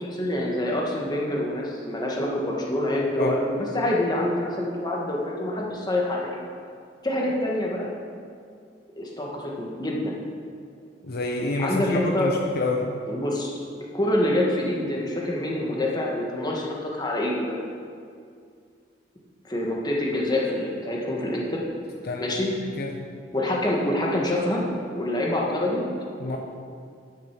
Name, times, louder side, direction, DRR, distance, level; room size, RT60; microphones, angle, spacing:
voice 1, 0.0-6.3 7.0-7.9 9.0-10.1 11.6-12.3 13.1-13.5 13.9-17.5 19.4-21.6 22.2-22.5 23.3-24.6 24.9-25.8 26.2-26.4, left 1 dB, 25° left, -2 dB, 1.5 m, -26 dB
voice 2, 11.0-12.9 22.0-22.4 22.8-23.0 26.2-26.4, left 2 dB, 55° left, 1 dB, 0.8 m, -28 dB
10.5 x 6.5 x 6.0 m, 2.3 s
head